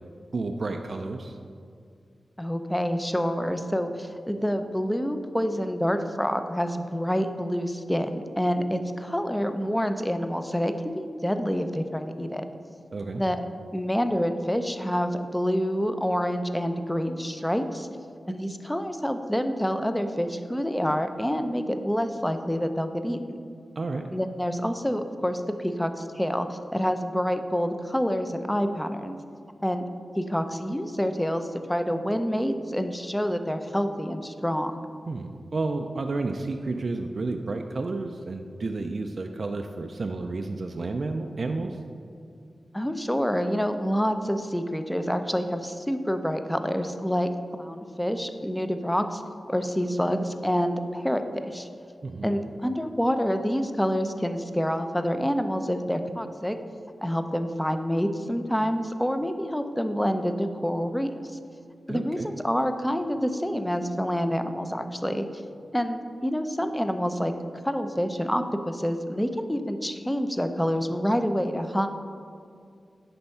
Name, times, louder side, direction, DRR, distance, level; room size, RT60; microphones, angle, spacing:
voice 1, 0.3-1.4 12.9-13.2 23.8-24.1 35.1-41.8 52.0-52.3 61.9-62.3, right 3 dB, 60° right, 4 dB, 0.4 m, -31 dB
voice 2, 2.4-12.5 13.2-13.4 13.7-17.9 18.2-23.4 24.1-29.2 29.6-29.8 30.2-34.8 42.7-47.3 47.6-49.2 49.5-51.7 52.2-56.6 57.0-61.2 61.9-65.3 65.7-67.3 67.6-71.9, equal, 5° left, 8 dB, 0.5 m, -27 dB
9.8 x 3.5 x 5.5 m, 2.3 s
cardioid pair, 60°, 0 cm